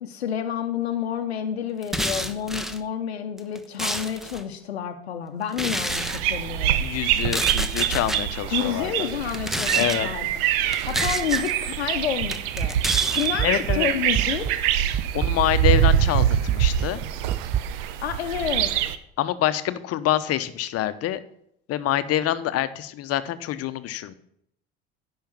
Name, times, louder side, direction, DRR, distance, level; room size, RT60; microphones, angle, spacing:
voice 1, 0.0-6.8 8.5-10.4 10.9-14.6 18.0-18.7, left 9 dB, 85° left, 6 dB, 0.8 m, -29 dB
sound 1, 1.8-2.8 3.4-4.4 5.5-6.2 7.2-8.2 9.2-10.0 10.7-11.5 12.3-13.3, equal, ahead, 1.1 m, -29 dB
sound 2, 5.9-19.0, right 11 dB, 65° right, 0.9 m, -25 dB
voice 2, 6.8-9.1 9.7-10.1 13.4-13.9 15.1-17.0 19.2-21.2 21.7-24.1, left 12 dB, 50° left, 13 dB, 1.0 m, -26 dB
sound 3, 12.6-14.7 14.9-17.6, right 11 dB, 20° right, 0.4 m, -28 dB
10.5 x 5.6 x 7.2 m, 0.70 s
hypercardioid pair, 70°, 31 cm